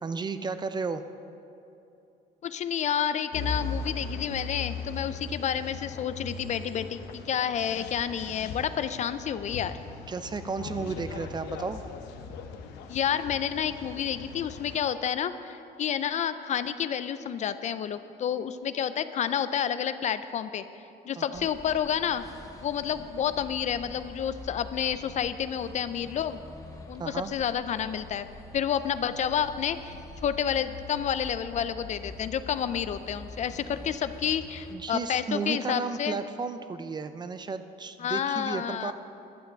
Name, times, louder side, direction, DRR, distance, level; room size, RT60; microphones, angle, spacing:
voice 1, 0.0-1.1 10.1-11.8 21.2-21.5 27.0-27.3 34.7-38.9, right 4 dB, 25° right, 11 dB, 0.5 m, -33 dB
voice 2, 2.4-9.8 12.9-20.6 21.1-22.2 22.6-26.4 26.9-28.3 28.5-36.2 38.0-38.9, left 8 dB, 45° left, 12 dB, 0.4 m, -30 dB
sound 1, 3.3-14.8, left 5 dB, 85° left, 0.9 m, -39 dB
sound 2, 21.3-34.7, left 2 dB, 20° left, 1.0 m, -45 dB
11.5 x 5.8 x 7.8 m, 2.7 s
cardioid pair, 110°, 17 cm